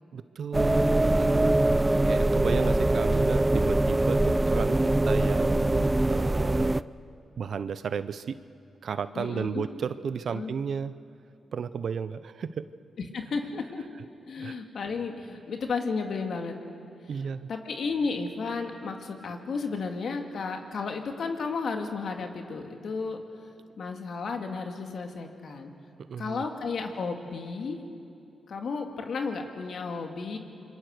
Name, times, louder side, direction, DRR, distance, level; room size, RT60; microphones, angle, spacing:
voice 1, 0.1-0.9 1.2-1.6 2.1-6.8 7.4-8.4 8.8-10.9 11.5-12.7 14.4-14.6 17.1-17.5 26.1-26.4, right 6 dB, 70° right, 14 dB, 0.7 m, -33 dB
sound 1, 0.5-6.8, right 2 dB, 20° right, 0.5 m, -23 dB
voice 2, 9.2-9.7 10.3-10.5 13.1-13.8 14.3-16.6 17.5-23.2 23.8-25.7 26.2-27.8 28.5-30.4, left 4 dB, 70° left, 4 dB, 2.3 m, -33 dB
26.5 x 23.0 x 6.6 m, 2.7 s
supercardioid pair, 55°, 0 cm